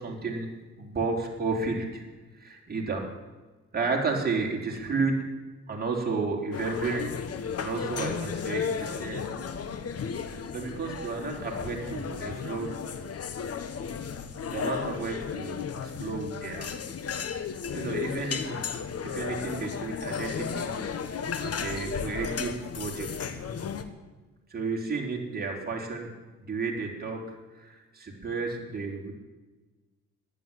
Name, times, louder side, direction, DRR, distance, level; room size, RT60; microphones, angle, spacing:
voice 1, 0.0-2.0 2.3-3.0 3.7-5.3 5.7-7.1 7.6-9.3 10.5-12.8 14.5-16.7 17.7-18.6 19.0-20.7 21.4-23.3 24.5-26.1 26.4-29.1, right 4 dB, 30° right, -1 dB, 4.2 m, -32 dB
cafe boursault, 6.5-23.8, left 6 dB, 55° left, 1.4 m, -34 dB
13.5 x 11.0 x 9.3 m, 1.2 s
cardioid pair, 90°, 30 cm